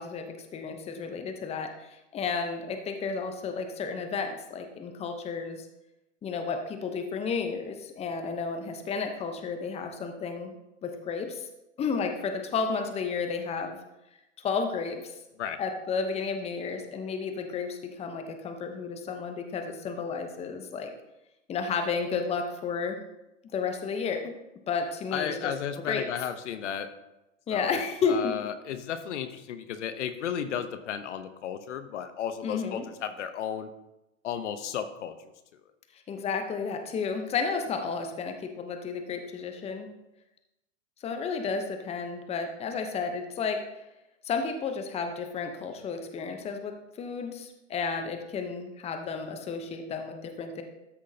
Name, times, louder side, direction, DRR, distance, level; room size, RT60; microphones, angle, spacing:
voice 1, 0.0-5.7 6.2-11.5 11.8-13.8 14.4-15.1 15.6-20.9 21.5-23.0 23.5-24.3 24.7-25.5 25.9-26.0 27.5-28.3 32.4-32.8 36.1-39.9 41.0-43.6 44.2-50.6, left 5 dB, 15° left, 6 dB, 0.8 m, -32 dB
voice 2, 25.1-26.9 27.5-27.8 28.1-33.7 34.2-35.1, left 8 dB, 65° left, 10 dB, 0.9 m, -34 dB
13.0 x 6.1 x 2.8 m, 0.92 s
hypercardioid pair, 115°, 38 cm